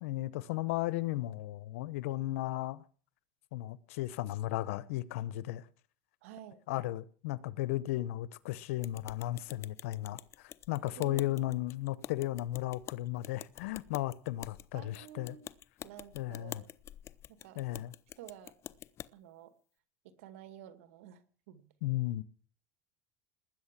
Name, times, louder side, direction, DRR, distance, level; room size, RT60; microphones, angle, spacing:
voice 1, 0.0-2.8 3.5-5.6 6.7-15.3 16.1-16.6 17.6-17.9 21.8-22.2, left 16 dB, 85° left, 0.9 m, -35 dB
voice 2, 6.2-6.6 10.8-11.5 14.7-15.5 15.8-16.7 17.3-17.7 18.2-18.6 19.1-19.5 20.0-21.7, right 10 dB, 85° right, 2.1 m, -51 dB
sound 1, 8.8-19.1, left 11 dB, 40° left, 0.7 m, -48 dB
20.0 x 9.2 x 7.4 m
supercardioid pair, 125°, 7 cm